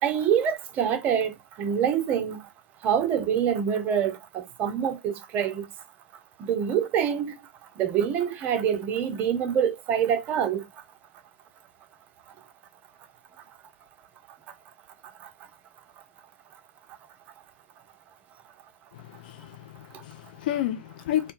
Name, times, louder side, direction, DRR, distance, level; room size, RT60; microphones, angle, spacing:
voice 1, 0.0-2.5 2.8-5.7 6.4-7.4 7.8-10.7 15.2-15.3, right 8 dB, 25° right, 0.4 m, -26 dB
voice 2, 18.9-21.3, left 12 dB, 45° left, 0.5 m, -31 dB
2.2 x 2.2 x 2.9 m
figure-of-eight pair, 110°, 6 cm